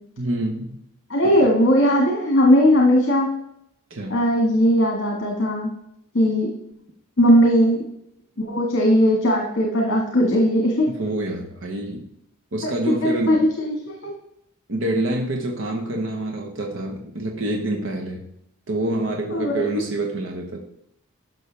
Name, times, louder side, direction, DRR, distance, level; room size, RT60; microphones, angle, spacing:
voice 1, 0.2-0.8 1.2-1.5 3.9-4.2 10.9-12.1 12.5-13.4 14.7-18.3 18.7-20.6, right 1 dB, 60° right, 1 dB, 1.1 m, -27 dB
voice 2, 1.1-3.3 4.1-5.7 6.1-6.5 7.2-7.8 8.4-10.9 13.0-14.1 19.3-19.8, equal, 60° left, -1 dB, 1.6 m, -18 dB
11.5 x 6.3 x 3.4 m, 0.76 s
head